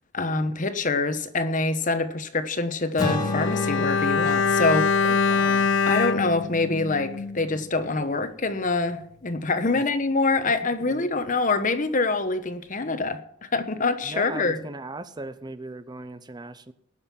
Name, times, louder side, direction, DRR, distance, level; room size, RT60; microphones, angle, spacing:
voice 1, 0.1-5.1 5.9-13.2 13.5-14.6, left 3 dB, 45° left, 11 dB, 1.2 m, -25 dB
Acoustic guitar / Strum, 3.0-7.7, left 2 dB, 20° left, 2.3 m, -34 dB
Bowed string instrument, 3.1-7.6 7.8-8.0, left 5 dB, 70° left, 0.6 m, -24 dB
voice 2, 5.0-5.7 9.7-9.9 10.8-11.1 14.0-16.7, right 2 dB, 20° right, 13 dB, 0.6 m, -38 dB
19.0 x 6.6 x 7.3 m, 0.71 s
head